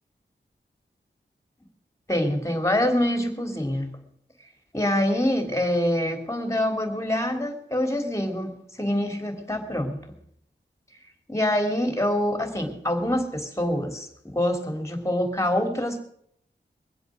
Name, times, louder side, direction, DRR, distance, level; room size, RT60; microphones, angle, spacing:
voice 1, 2.1-3.9 4.7-10.0 11.3-16.0, left 1 dB, 15° left, 6 dB, 3.2 m, -25 dB
22.5 x 7.9 x 6.4 m, 0.67 s
wide cardioid pair, 65°, 19 cm